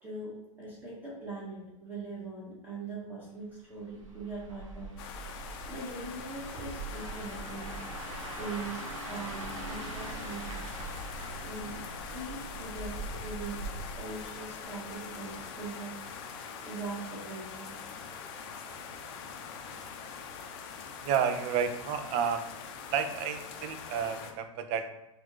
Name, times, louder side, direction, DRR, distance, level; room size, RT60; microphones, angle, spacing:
voice 1, 0.0-4.9 5.6-10.7 11.4-13.7 13.9-16.0 16.6-17.8, right 3 dB, 10° right, -7 dB, 1.3 m, -41 dB
sound 1, 3.8-15.0 15.3-15.6, right 2 dB, 75° right, 1.0 m, -42 dB
sound 2, 5.0-24.3, left 6 dB, 50° left, 0.6 m, -43 dB
voice 2, 21.0-22.4 22.9-24.9, right 7 dB, 40° right, 9 dB, 0.4 m, -31 dB
4.1 x 2.4 x 3.0 m, 0.97 s
hypercardioid pair, 115°, 17 cm